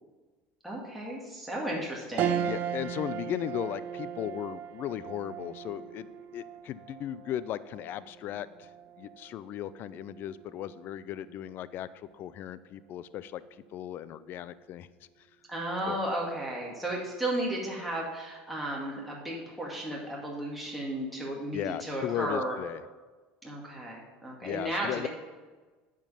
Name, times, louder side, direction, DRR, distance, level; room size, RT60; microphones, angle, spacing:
voice 1, 0.6-2.4 15.5-22.6 23.4-25.1, right 1 dB, ahead, -4 dB, 2.1 m, -34 dB
sound 1, 2.2-11.8 12.3-12.4 13.7-14.1, right 9 dB, 50° right, 0.6 m, -38 dB
voice 2, 2.5-8.7 9.0-14.9 15.9-16.0 21.5-22.8 24.4-25.1, left 11 dB, 50° left, 16 dB, 0.4 m, -36 dB
9.0 x 5.2 x 5.7 m, 1.3 s
supercardioid pair, 105°, 4 cm